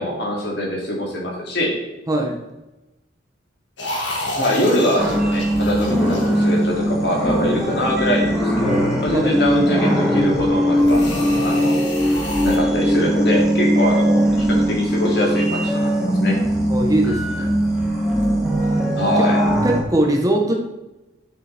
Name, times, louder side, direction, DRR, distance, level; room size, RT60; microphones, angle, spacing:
voice 1, 0.0-1.7 4.3-11.0 11.4-11.7 12.4-16.4 19.0-19.4, equal, 65° left, -2 dB, 2.6 m, -23 dB
voice 2, 2.1-2.4 9.2-9.4 16.7-17.5 19.2-19.3 19.6-20.5, right 1 dB, 20° right, 2 dB, 1.0 m, -21 dB
sound 1, 3.8-6.9 10.7-12.6, left 1 dB, 85° left, 2.0 m, -30 dB
sound 2, 5.0-19.8, equal, 5° right, 1.7 m, -20 dB
9.1 x 6.5 x 3.4 m, 0.99 s
head